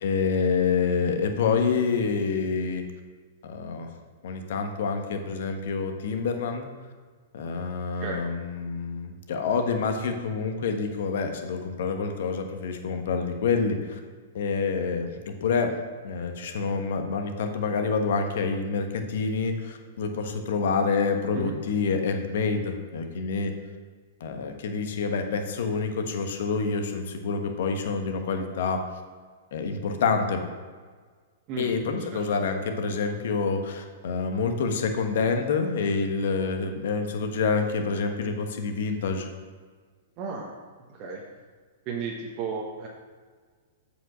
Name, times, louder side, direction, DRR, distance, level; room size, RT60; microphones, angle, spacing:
voice 1, 0.0-2.8 3.4-3.9 4.2-6.7 7.3-14.0 14.3-15.7 16.0-23.5 24.2-28.8 29.5-30.4 31.6-39.3, left 5 dB, 60° left, 5 dB, 1.2 m, -27 dB
voice 2, 40.2-40.5 40.9-41.2 41.8-42.9, right 5 dB, 40° right, -2 dB, 1.3 m, -33 dB
7.8 x 5.2 x 6.1 m, 1.5 s
hypercardioid pair, 110°, 0 cm